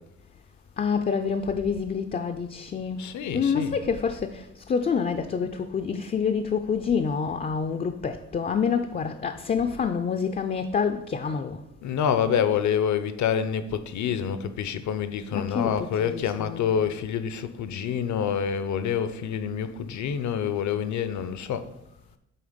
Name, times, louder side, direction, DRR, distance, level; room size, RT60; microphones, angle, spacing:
voice 1, 0.8-3.0 3.3-4.4 4.7-11.6 15.3-16.7, left 6 dB, 30° left, 0.4 m, -27 dB
voice 2, 3.0-3.8 11.8-21.7, left 8 dB, 70° left, 0.7 m, -27 dB
8.6 x 3.4 x 5.1 m
cardioid pair, 90°, 30 cm